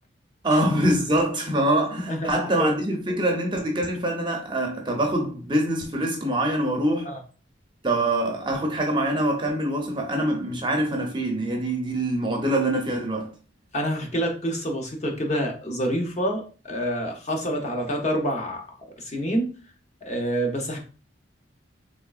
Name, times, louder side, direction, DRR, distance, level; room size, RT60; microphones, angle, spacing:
voice 1, 0.4-7.1 7.8-13.3, right 1 dB, 25° right, 0.6 m, -24 dB
voice 2, 2.1-2.7 7.1-7.2 13.7-19.5 20.0-20.8, equal, 35° left, 0.7 m, -27 dB
3.6 x 3.1 x 2.3 m
head